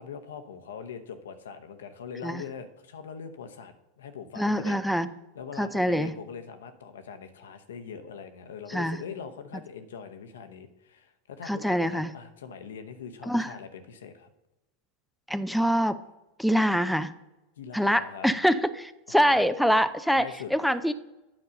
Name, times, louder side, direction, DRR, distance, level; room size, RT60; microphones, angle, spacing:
voice 1, 0.0-4.8 5.4-14.3 17.6-18.3 19.1-19.4 20.2-20.5, left 6 dB, 80° left, 8 dB, 0.8 m, -42 dB
voice 2, 4.4-5.1 5.6-6.1 8.7-9.0 11.4-12.1 13.2-13.5 15.3-16.0 16.4-17.1 17.7-20.9, equal, ahead, 11 dB, 0.4 m, -25 dB
8.9 x 5.3 x 5.2 m, 0.99 s
hypercardioid pair, 95°, 0 cm